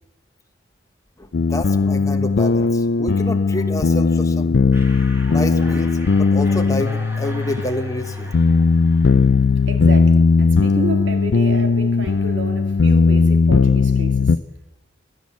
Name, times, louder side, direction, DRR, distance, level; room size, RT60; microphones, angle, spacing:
voice 1, 1.2-4.6 5.3-8.4, left 1 dB, 15° left, 1.3 m, -28 dB
sound 1, 1.3-14.4, left 4 dB, 65° left, 0.5 m, -17 dB
sound 2, 4.7-10.2, equal, 15° right, 2.3 m, -41 dB
voice 2, 9.7-14.3, right 1 dB, 70° right, 2.2 m, -30 dB
16.5 x 11.0 x 7.3 m
head